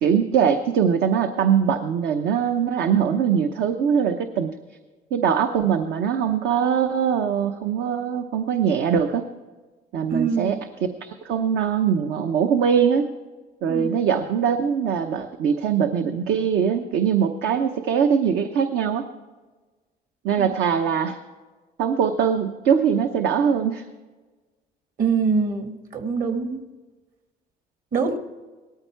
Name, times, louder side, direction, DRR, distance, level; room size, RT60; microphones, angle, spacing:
voice 1, 0.0-4.5 5.1-9.3 9.9-10.6 11.0-13.1 13.6-19.1 20.2-21.2 21.8-23.8, right 7 dB, 75° right, 6 dB, 0.9 m, -22 dB
voice 2, 10.1-10.5 13.7-13.9 20.4-20.5 25.0-26.7 27.9-28.2, right 5 dB, 55° right, 6 dB, 1.7 m, -24 dB
18.0 x 13.5 x 4.6 m, 1.3 s
cardioid pair, 110°, 17 cm